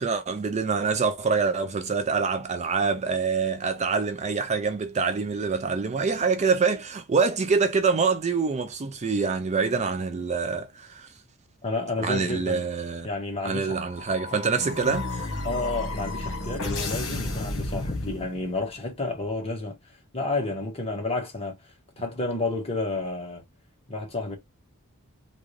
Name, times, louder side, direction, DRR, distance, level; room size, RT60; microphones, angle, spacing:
voice 1, 0.0-11.1 12.0-13.1 13.4-15.3, right 5 dB, 30° right, 0.4 m, -25 dB
voice 2, 11.6-12.7 13.0-13.8 15.4-19.7 20.1-21.5 22.0-23.4 23.9-24.4, left 2 dB, 25° left, 1.3 m, -30 dB
sound 1, 13.7-18.7, left 2 dB, 65° left, 1.5 m, -32 dB
3.7 x 2.6 x 3.1 m
head